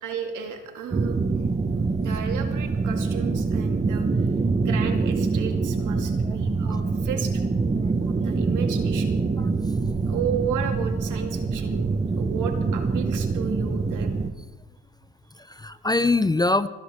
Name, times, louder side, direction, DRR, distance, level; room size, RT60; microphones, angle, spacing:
voice 1, 0.0-1.3 2.0-4.3 4.6-7.3 8.0-9.2 10.1-11.9 12.2-14.1, right 7 dB, 75° right, 5 dB, 2.2 m, -33 dB
sound 1, 0.9-14.3, right 4 dB, 20° right, 1.0 m, -25 dB
voice 2, 15.4-16.7, left 3 dB, 15° left, 14 dB, 0.5 m, -24 dB
28.5 x 11.0 x 3.6 m, 1.1 s
cardioid pair, 100°, 31 cm